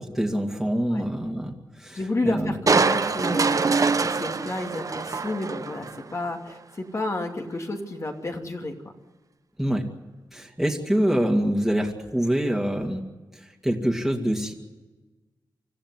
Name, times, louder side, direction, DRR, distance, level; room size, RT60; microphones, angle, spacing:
voice 1, 0.0-2.5 9.6-9.9 10.3-13.0 13.3-14.5, equal, ahead, -1 dB, 2.5 m, -25 dB
voice 2, 1.9-8.7, left 2 dB, 40° left, 3 dB, 2.8 m, -31 dB
Crushing, 2.7-6.0 6.5-6.6, right 4 dB, 45° right, 0.9 m, -24 dB
26.0 x 14.5 x 9.8 m, 1.2 s
wide cardioid pair, 85°, 8 cm